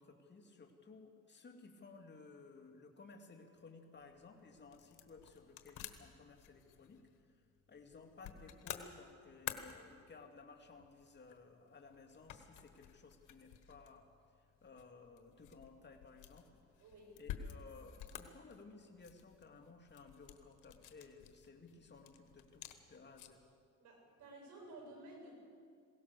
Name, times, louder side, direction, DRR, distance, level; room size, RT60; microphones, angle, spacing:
voice 1, 0.0-7.0 7.7-14.1 14.6-16.5 17.2-23.4, left 4 dB, 35° left, 3 dB, 2.7 m, -57 dB
sound 1, 4.0-23.5, left 10 dB, 90° left, 1.3 m, -53 dB
voice 2, 16.8-17.2 23.8-25.4, right 1 dB, 70° right, 1 dB, 7.7 m, -54 dB
21.5 x 17.5 x 6.9 m, 2.2 s
cardioid pair, 90°, 30 cm